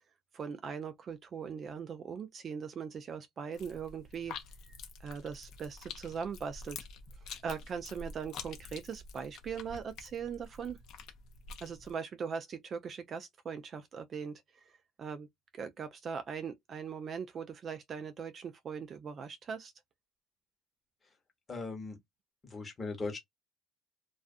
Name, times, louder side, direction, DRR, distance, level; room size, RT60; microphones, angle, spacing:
voice 1, 0.3-4.4 4.6-6.8 7.4-10.8 11.6-14.7 15.0-15.3 15.5-19.7, right 6 dB, 35° right, 0.3 m, -40 dB
sound 1, 3.5-11.9, left 5 dB, 60° left, 0.7 m, -48 dB
voice 2, 21.5-22.0 22.4-23.2, left 3 dB, 20° left, 1.1 m, -38 dB
2.3 x 2.3 x 2.4 m
cardioid pair, 140°, 0 cm